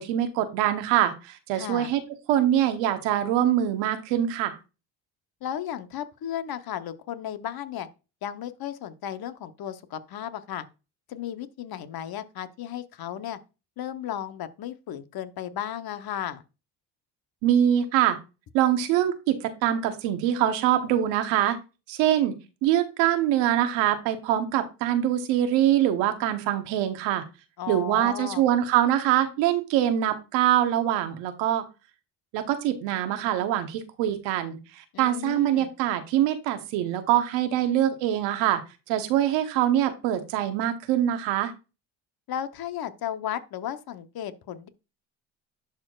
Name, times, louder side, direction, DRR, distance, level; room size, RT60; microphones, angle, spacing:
voice 1, 0.0-2.0 2.3-4.6 17.4-18.2 18.5-21.6 21.9-22.3 22.6-27.2 27.7-31.6 32.3-38.6 38.9-41.5, right 11 dB, 90° right, 1.1 m, -24 dB
voice 2, 1.5-1.9 5.4-7.9 8.2-10.7 11.1-13.4 13.8-16.4 27.6-28.4 34.9-35.7 42.3-44.7, left 10 dB, 60° left, 0.9 m, -34 dB
11.0 x 4.4 x 2.4 m
supercardioid pair, 75°, 42 cm